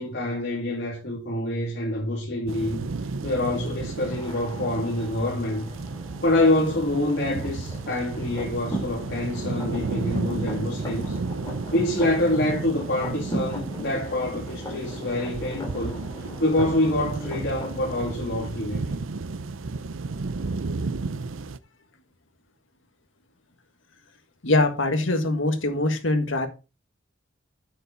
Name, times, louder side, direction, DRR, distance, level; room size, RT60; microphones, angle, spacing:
voice 1, 0.0-2.8 3.2-5.7 6.2-11.1 11.7-16.0 16.4-19.0, left 1 dB, 60° left, 2.6 m, -26 dB
sound 1, 2.5-21.6, right 3 dB, 85° right, 0.6 m, -33 dB
sound 2, 4.1-18.2, equal, 20° left, 3.3 m, -39 dB
voice 2, 24.4-26.5, left 2 dB, 75° left, 1.7 m, -23 dB
8.8 x 7.2 x 4.1 m
head